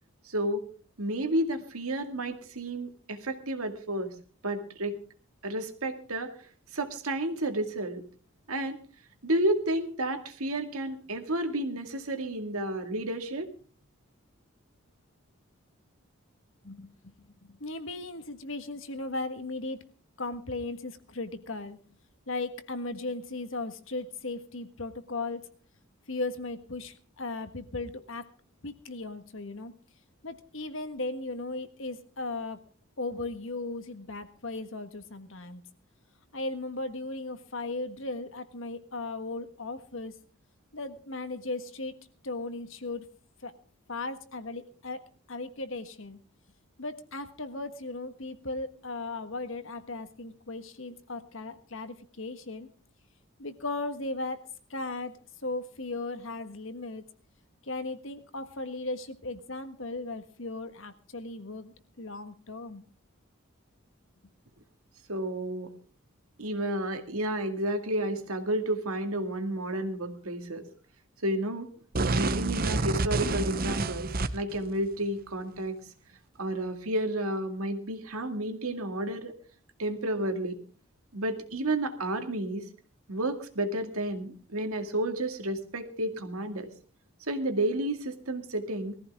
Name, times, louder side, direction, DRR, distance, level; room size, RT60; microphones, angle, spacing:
voice 1, 0.2-0.6 1.0-4.2 4.4-5.0 5.4-6.4 6.7-8.0 8.5-8.8 9.2-13.5 65.1-65.7 66.4-70.7 71.2-71.7 72.1-75.8 76.4-79.3 79.8-80.6 81.1-82.7 83.1-86.7 87.3-88.9, right 1 dB, 85° right, 6 dB, 2.2 m, -31 dB
voice 2, 16.6-17.1 17.4-19.8 20.2-21.8 22.3-25.4 26.1-28.3 28.6-29.7 30.2-32.6 33.0-35.6 36.3-40.1 40.7-41.9 42.2-43.0 43.4-43.5 43.9-46.2 46.8-52.7 53.4-57.0 57.6-62.8, left 2 dB, 65° left, 9 dB, 1.6 m, -37 dB
sound 1, 71.9-74.6, right 3 dB, 40° right, 0.8 m, -28 dB
20.5 x 14.5 x 3.6 m, 0.40 s
head